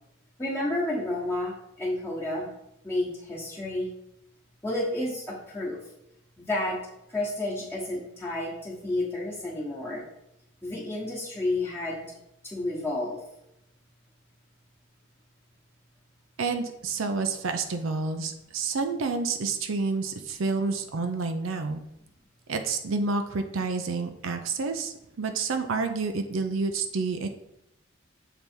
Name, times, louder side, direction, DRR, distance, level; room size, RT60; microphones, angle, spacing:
voice 1, 0.4-2.5 2.8-3.9 4.6-5.8 6.4-6.8 7.1-10.0 10.6-12.0 12.4-13.2, left 1 dB, 10° left, -5 dB, 1.1 m, -30 dB
voice 2, 16.4-21.8 22.5-27.3, right 4 dB, 70° right, 7 dB, 0.5 m, -29 dB
6.9 x 3.4 x 4.4 m, 0.80 s
head